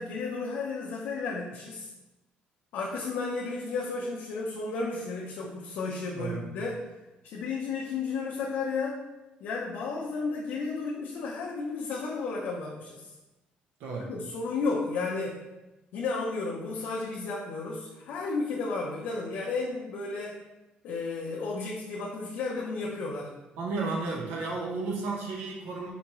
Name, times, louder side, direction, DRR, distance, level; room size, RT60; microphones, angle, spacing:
voice 1, 0.0-1.9 2.7-6.8 7.2-9.0 9.4-13.1 14.1-15.4 15.9-20.4 20.8-23.4, left 4 dB, 80° left, -4 dB, 0.7 m, -33 dB
voice 2, 6.1-6.5 13.8-14.1 23.6-25.9, right 3 dB, 85° right, -1 dB, 1.1 m, -33 dB
5.0 x 3.5 x 3.0 m, 1.0 s
cardioid pair, 135°, 3 cm